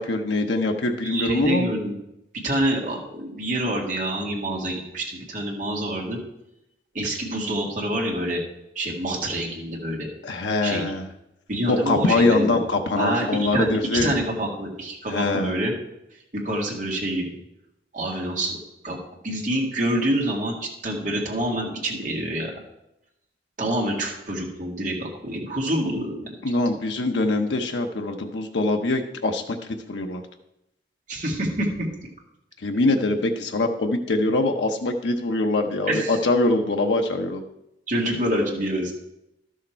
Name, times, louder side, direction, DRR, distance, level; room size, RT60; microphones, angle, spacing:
voice 1, 0.0-1.7 10.2-11.1 11.7-14.2 15.1-15.5 26.4-29.6 29.9-30.2 32.6-37.4, left 2 dB, 85° left, 4 dB, 0.7 m, -23 dB
voice 2, 1.0-1.9 2.4-6.2 6.9-8.4 8.8-10.1 10.6-10.9 11.5-12.6 13.0-13.3 13.5-15.7 16.3-17.2 17.9-18.6 18.8-19.0 19.2-22.5 23.6-26.3 31.1-31.9 35.9-36.2 37.9-38.9, right 1 dB, 45° right, -1 dB, 1.9 m, -26 dB
12.0 x 6.4 x 4.5 m, 0.86 s
head